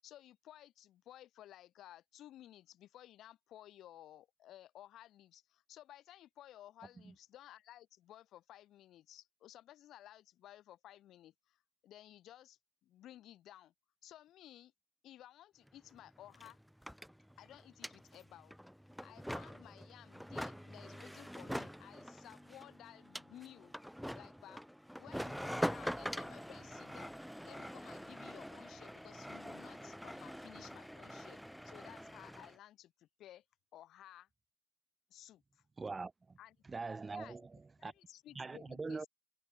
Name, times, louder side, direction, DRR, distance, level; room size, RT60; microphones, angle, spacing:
voice 1, 0.0-13.7 14.0-14.7 15.0-16.6 17.4-18.6 19.0-23.7 24.1-24.6 25.0-27.2 27.4-33.4 33.7-34.3 35.1-35.6 36.4-36.5 37.1-37.4 37.8-39.1, left 13 dB, 60° left, 6.8 m, -56 dB
sound 1, 15.7-15.8 15.9-32.6, equal, ahead, 1.4 m, -44 dB
voice 2, 35.8-36.4 36.7-37.4 37.8-37.9 38.3-39.1, right 4 dB, 20° right, 1.3 m, -42 dB
cardioid pair, 110°, 0 cm